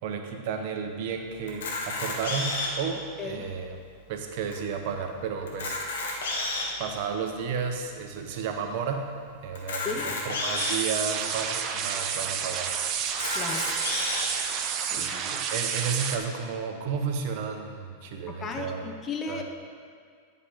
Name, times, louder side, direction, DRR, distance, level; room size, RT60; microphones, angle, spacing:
voice 1, 0.0-3.8 4.1-5.8 6.8-12.8 14.9-18.9 19.3-19.4, right 6 dB, 60° right, 4 dB, 1.2 m, -32 dB
Camera, 1.5-2.9 3.5-3.6 3.8-4.0 4.5-4.6 5.4-6.8 7.4-7.5 9.5-10.8 11.5-11.6 11.9-12.0 13.1-14.2, left 3 dB, 80° left, 1.8 m, -31 dB
sound 1, 10.6-16.2, right 7 dB, 40° right, 0.8 m, -30 dB
voice 2, 13.3-13.6 14.9-15.1 18.3-19.4, left 4 dB, 25° left, 4 dB, 1.1 m, -35 dB
10.0 x 5.7 x 5.7 m, 2.1 s
hypercardioid pair, 120°, 0 cm